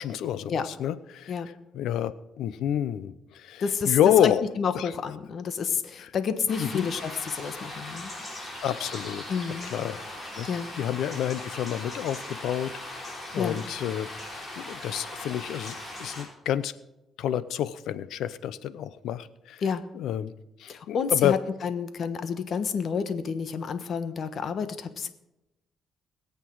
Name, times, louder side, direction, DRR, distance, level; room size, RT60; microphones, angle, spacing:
voice 1, 0.0-1.3 1.7-4.5 4.7-4.9 6.0-6.1 6.6-6.9 8.6-9.2 9.7-10.0 10.4-10.5 10.8-16.7 17.2-19.6 19.9-20.3 20.6-21.3, left 10 dB, 80° left, 16 dB, 0.7 m, -29 dB
voice 2, 3.6-8.1 9.3-9.7 10.5-10.7 13.4-13.6 19.6-19.8 20.7-25.1, left 6 dB, 55° left, 10 dB, 1.2 m, -29 dB
sound 1, 6.5-16.2, left 1 dB, 30° left, 5.5 m, -39 dB
21.5 x 8.4 x 4.7 m, 0.92 s
cardioid pair, 90°, 0 cm